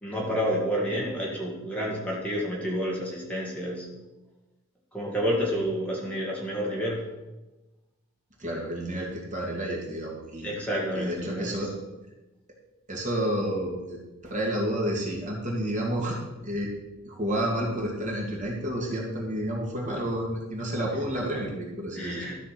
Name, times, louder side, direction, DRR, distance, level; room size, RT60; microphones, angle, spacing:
voice 1, 0.0-3.9 4.9-7.1 10.4-11.7 22.0-22.4, equal, 5° left, -4 dB, 2.1 m, -29 dB
voice 2, 8.4-10.6 10.9-11.7 12.9-16.2 16.4-16.7 17.0-22.4, right 1 dB, 35° right, -2 dB, 2.2 m, -30 dB
13.0 x 5.6 x 6.0 m, 1.1 s
head